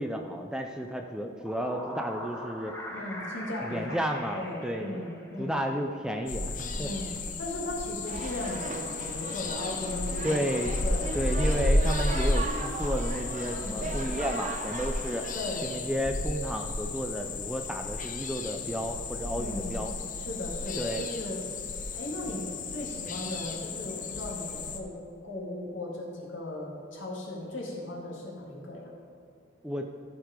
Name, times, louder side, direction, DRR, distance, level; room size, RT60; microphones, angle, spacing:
voice 1, 0.0-2.8 3.6-5.0 5.4-6.9 10.2-10.8 11.1-15.3 15.6-19.9 20.8-21.0 29.6-29.9, equal, 5° right, 3 dB, 0.4 m, -32 dB
sound 1, 1.2-5.6, equal, 10° left, 1.1 m, -42 dB
voice 2, 2.9-4.0 4.3-5.6 6.8-10.4 10.8-11.1 13.5-14.0 15.3-15.7 19.3-19.8 20.2-21.4 21.9-25.0 25.2-28.9, left 1 dB, 75° left, -3 dB, 2.0 m, -37 dB
sound 2, 6.3-24.8, left 2 dB, 45° left, 0.7 m, -33 dB
sound 3, 8.1-15.3, right 2 dB, 40° right, 0.7 m, -38 dB
14.0 x 4.9 x 5.0 m, 2.4 s
head